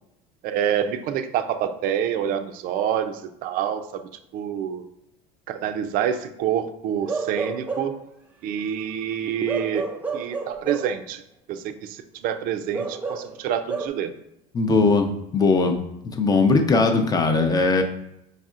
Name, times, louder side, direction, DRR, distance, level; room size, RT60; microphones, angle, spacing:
voice 1, 0.4-4.8 5.5-7.9 8.4-9.9 10.1-11.2 11.5-14.1, right 9 dB, 55° right, 9 dB, 0.5 m, -27 dB
Bark / Livestock farm animals working animals, 7.1-8.1 9.5-11.0 12.7-13.9, right 4 dB, 10° right, 0.7 m, -30 dB
voice 2, 14.5-15.8 16.0-17.8, left 3 dB, 20° left, 6 dB, 0.6 m, -19 dB
5.2 x 4.1 x 2.5 m, 0.79 s
supercardioid pair, 125°, 17 cm